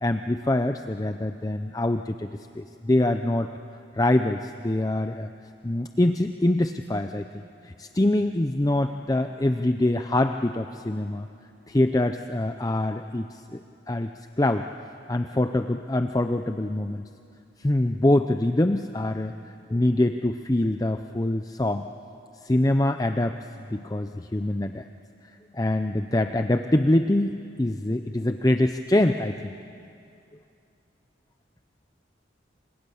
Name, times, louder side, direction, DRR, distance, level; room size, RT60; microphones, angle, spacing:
voice 1, 0.0-2.3 2.6-3.5 3.9-5.3 5.6-7.3 7.6-11.3 11.7-13.6 13.9-14.1 14.4-14.7 15.1-17.0 17.6-19.3 19.7-21.9 22.4-23.4 23.7-24.8 25.5-29.5, left 1 dB, 20° left, 7 dB, 0.5 m, -24 dB
28.5 x 25.5 x 7.1 m, 2.6 s
head